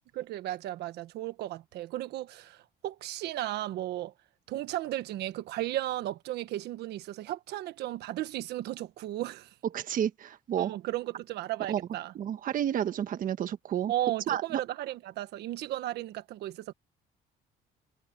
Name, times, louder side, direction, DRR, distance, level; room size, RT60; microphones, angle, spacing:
voice 1, 0.1-4.1 4.5-9.5 10.6-12.1 13.9-16.7, right 14 dB, 80° right, 1.4 m, -35 dB
voice 2, 9.7-10.7 11.7-11.8 12.1-13.9 14.3-14.4, right 10 dB, 55° right, 1.4 m, -30 dB
cardioid pair, 110°, 17 cm